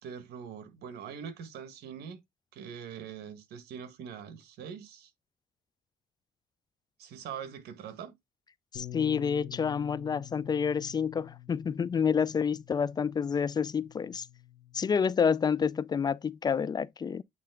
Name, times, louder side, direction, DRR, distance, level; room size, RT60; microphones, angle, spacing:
voice 1, 0.0-2.2 2.5-5.1 7.0-8.1, right 7 dB, 70° right, 1.6 m, -43 dB
Bass guitar, 8.7-15.0, left 13 dB, 65° left, 1.3 m, -48 dB
voice 2, 8.7-14.3 14.7-17.2, left 6 dB, 25° left, 0.3 m, -28 dB
8.6 x 3.3 x 3.6 m
cardioid pair, 110°, 17 cm